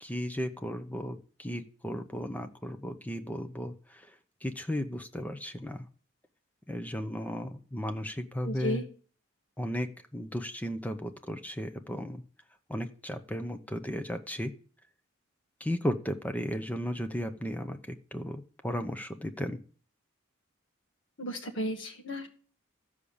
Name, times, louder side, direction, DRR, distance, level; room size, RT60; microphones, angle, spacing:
voice 1, 0.0-4.1 4.4-5.9 6.7-8.8 9.6-12.2 12.7-14.5 15.6-19.6, equal, 10° left, 7 dB, 0.7 m, -35 dB
voice 2, 8.4-8.8 21.2-22.3, equal, 65° left, 5 dB, 1.6 m, -34 dB
13.5 x 5.0 x 7.1 m, 0.43 s
head